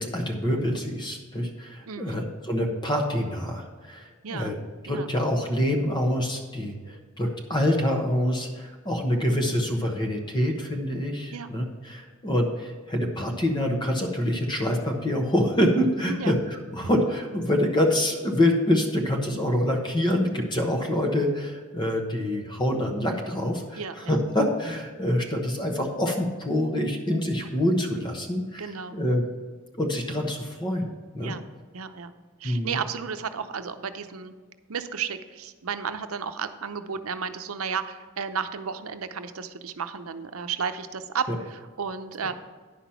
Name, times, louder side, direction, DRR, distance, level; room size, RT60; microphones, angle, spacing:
voice 1, 0.0-4.5 4.8-29.3 29.8-31.3 32.4-32.8 41.3-41.4, left 1 dB, 20° left, 2 dB, 1.0 m, -26 dB
voice 2, 1.9-2.2 4.2-4.5 4.9-5.1 11.3-11.5 16.0-16.3 23.8-24.2 28.6-29.0 31.2-31.4 31.7-32.1 32.4-34.3 34.7-42.3, right 6 dB, 85° right, 9 dB, 0.7 m, -33 dB
10.0 x 6.0 x 5.7 m, 1.5 s
head